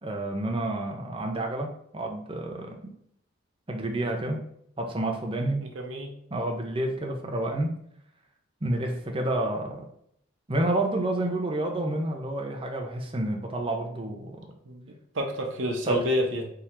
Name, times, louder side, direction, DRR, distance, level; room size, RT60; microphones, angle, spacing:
voice 1, 0.0-1.7 1.9-2.8 3.7-4.4 4.8-5.6 6.3-7.7 8.6-9.8 10.5-14.3 15.9-16.0, right 1 dB, 25° right, 2 dB, 0.7 m, -29 dB
voice 2, 5.6-6.1 14.7-16.5, equal, 75° right, 2 dB, 0.9 m, -29 dB
3.6 x 2.9 x 4.4 m, 0.68 s
head